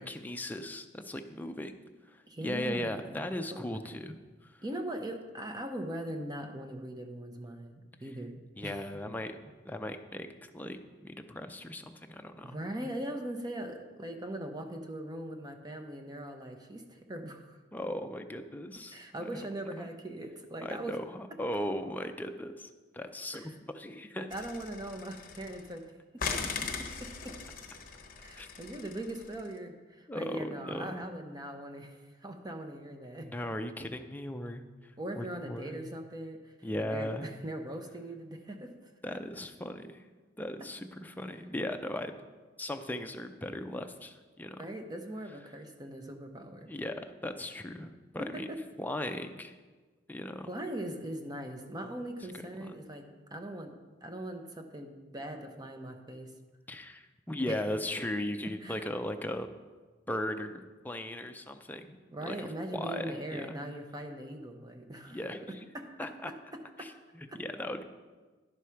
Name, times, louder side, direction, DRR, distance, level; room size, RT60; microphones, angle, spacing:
voice 1, 0.0-1.7 2.1-4.6 8.6-12.6 17.7-19.4 19.8-19.9 20.6-24.3 28.4-28.5 30.1-31.2 33.2-35.8 36.6-37.3 39.0-40.0 40.4-42.1 42.6-44.7 46.6-48.5 48.8-49.6 50.1-50.5 52.6-52.7 56.7-59.5 60.1-62.0 62.3-63.6 65.1-65.6 66.0-66.3 66.8-67.8, left 1 dB, 10° left, 6 dB, 0.5 m, -38 dB
voice 2, 2.3-3.2 3.5-3.6 4.6-8.8 12.4-17.6 18.9-21.0 23.3-23.5 24.2-25.9 26.6-26.7 27.0-27.3 28.2-33.3 35.0-38.7 44.6-46.7 48.3-48.6 50.5-53.1 53.3-53.7 54.0-56.3 57.5-57.6 58.6-58.9 62.1-65.2 65.7-65.9 66.8-66.9 67.3-67.4, right 1 dB, 20° right, 5 dB, 0.8 m, -40 dB
sound 1, 24.3-25.8 26.2-29.5, left 5 dB, 50° left, 0.9 m, -39 dB
11.0 x 4.8 x 5.7 m, 1.3 s
head